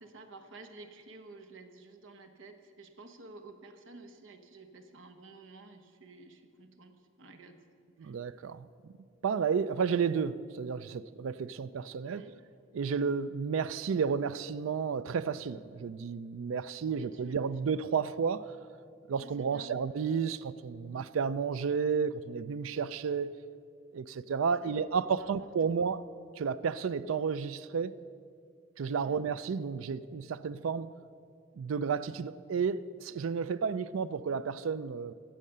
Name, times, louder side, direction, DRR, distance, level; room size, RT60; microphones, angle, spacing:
voice 1, 0.0-7.6 7.9-8.1 12.0-12.4 16.9-17.4 19.2-19.8 24.6-24.8 25.2-25.7 29.0-29.2, right 3 dB, 70° right, 1.1 m, -52 dB
voice 2, 8.0-8.7 9.2-12.3 12.7-18.5 19.1-23.3 23.9-26.0 26.4-27.9 28.8-30.9 31.6-35.1, right 6 dB, 90° right, 0.4 m, -32 dB
16.0 x 7.4 x 6.7 m
head